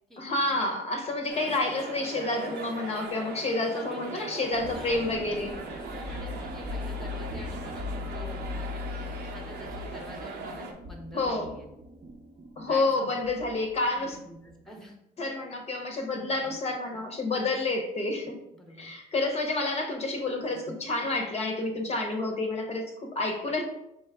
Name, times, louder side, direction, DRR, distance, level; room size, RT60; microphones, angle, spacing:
voice 1, 0.2-5.6 11.1-11.5 12.6-14.2 15.2-18.4 18.8-23.6, left 2 dB, 40° left, 3 dB, 0.7 m, -29 dB
sound 1, 1.3-10.7, right 3 dB, 85° right, 0.8 m, -40 dB
voice 2, 3.5-4.2 4.5-5.1 5.8-8.7 9.3-11.7 12.7-13.1 13.9-15.0 18.5-18.9, left 1 dB, 5° left, 2 dB, 0.8 m, -47 dB
sound 2, 4.5-14.5, left 3 dB, 45° right, 0.6 m, -39 dB
4.6 x 3.0 x 3.4 m, 0.85 s
cardioid pair, 110°, 17 cm